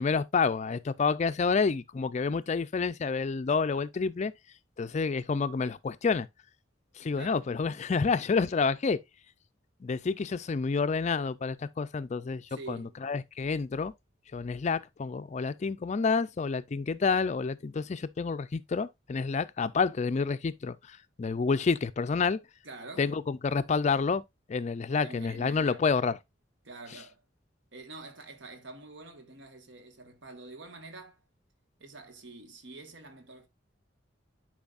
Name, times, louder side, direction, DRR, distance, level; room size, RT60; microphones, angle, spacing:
voice 1, 0.0-4.3 4.8-6.3 7.0-9.0 9.8-13.9 14.3-22.4 23.0-24.2 24.5-26.2, left 4 dB, 35° left, 0.4 m, -29 dB
voice 2, 12.5-13.0 22.6-23.1 24.9-25.9 26.6-27.2 27.7-31.2 31.8-33.5, right 3 dB, 70° right, 1.4 m, -46 dB
10.5 x 4.8 x 2.5 m
head